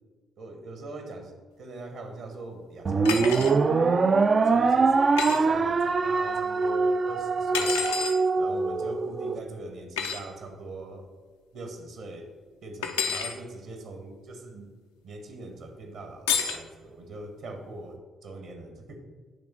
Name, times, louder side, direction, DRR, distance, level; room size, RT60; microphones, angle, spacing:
voice 1, 0.4-1.3 1.6-3.8 4.4-4.9 5.2-7.9 8.4-11.1 11.5-12.3 12.6-14.7 15.0-19.0, right 2 dB, 60° right, 4 dB, 1.2 m, -42 dB
sound 1, 2.9-9.4, right 4 dB, 40° right, 0.4 m, -23 dB
sound 2, 3.0-3.5 5.2-5.4 7.5-8.2 10.0-10.2 12.8-13.3 16.3-16.6, left 6 dB, 75° left, 0.5 m, -29 dB
8.5 x 3.6 x 5.7 m, 1.5 s
figure-of-eight pair, 40°, 0 cm